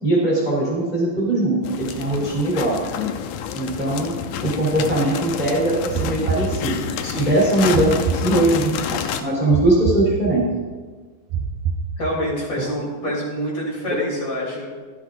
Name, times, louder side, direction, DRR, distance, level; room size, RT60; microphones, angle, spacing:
voice 1, 0.0-2.8 3.5-6.8 7.1-10.5 12.6-12.7, right 1 dB, 15° right, -6 dB, 3.5 m, -21 dB
sound 1, 1.6-9.2, left 8 dB, 80° left, 2.0 m, -29 dB
sound 2, 5.9-7.1 7.7-8.9 9.5-10.7 11.3-12.5, right 6 dB, 80° right, 2.1 m, -27 dB
voice 2, 7.0-7.3 12.0-14.7, equal, 35° left, -4 dB, 3.7 m, -26 dB
15.5 x 12.5 x 2.6 m, 1.4 s
omnidirectional pair, 3.7 m